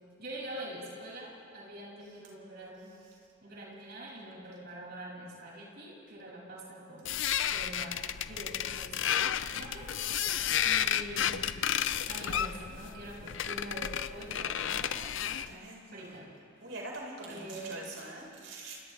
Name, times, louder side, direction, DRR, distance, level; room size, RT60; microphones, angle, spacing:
voice 1, 0.2-2.9 3.4-7.2 7.5-9.9 10.6-11.5 12.1-15.1 15.9-16.3 17.3-17.9, right 1 dB, 55° right, -5 dB, 6.9 m, -44 dB
sound 1, 7.0-15.5, left 9 dB, 75° left, 0.5 m, -32 dB
voice 2, 10.1-10.5 15.2-16.1 16.6-18.8, right 2 dB, 75° right, -2 dB, 5.2 m, -44 dB
28.5 x 27.5 x 3.5 m, 2.4 s
head